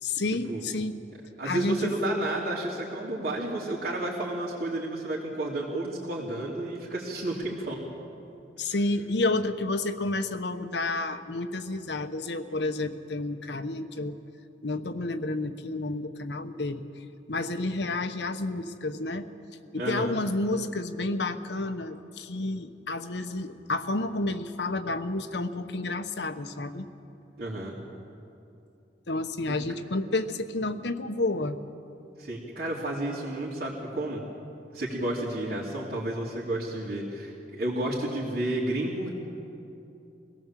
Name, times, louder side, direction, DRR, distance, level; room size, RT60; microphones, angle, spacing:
voice 1, 0.0-1.0 1.4-1.9 8.6-14.2 14.6-19.3 19.7-26.9 29.1-31.6, left 2 dB, 70° left, 9 dB, 1.1 m, -30 dB
voice 2, 1.4-7.8 19.8-20.1 27.4-27.8 32.2-34.2 34.7-39.1, right 1 dB, 60° right, -6 dB, 3.0 m, -31 dB
25.5 x 17.5 x 7.5 m, 2.7 s
head